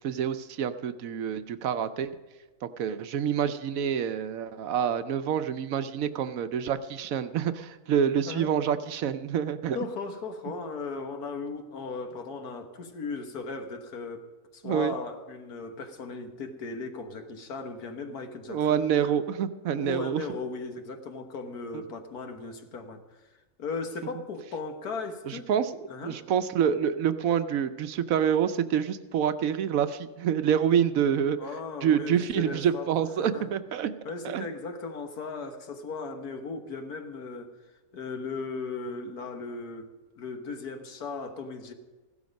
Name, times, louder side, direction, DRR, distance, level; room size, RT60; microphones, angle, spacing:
voice 1, 0.0-2.1 2.6-9.8 14.6-14.9 18.5-20.2 25.3-31.4 31.8-33.9 34.2-34.5, right 8 dB, 70° right, 11 dB, 1.0 m, -27 dB
voice 2, 9.7-14.3 14.5-19.1 19.8-23.0 23.6-25.5 25.9-26.2 31.4-32.9 33.2-33.5 34.1-37.5 37.9-41.7, left 4 dB, 80° left, 6 dB, 1.8 m, -37 dB
15.5 x 12.0 x 5.3 m, 1.2 s
omnidirectional pair, 1.6 m